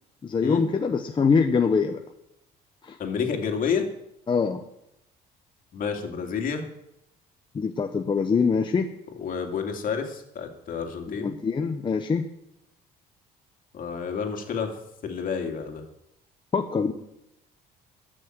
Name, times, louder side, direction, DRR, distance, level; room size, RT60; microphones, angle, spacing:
voice 1, 0.2-2.0 2.8-3.0 4.3-4.6 7.5-8.9 11.1-12.2 16.5-16.9, left 5 dB, 30° left, 5 dB, 0.9 m, -24 dB
voice 2, 3.0-3.9 5.7-6.6 9.2-11.3 13.7-14.8 15.0-15.8, left 6 dB, 55° left, 4 dB, 2.5 m, -29 dB
14.0 x 6.3 x 9.1 m, 0.83 s
cardioid pair, 110°, 17 cm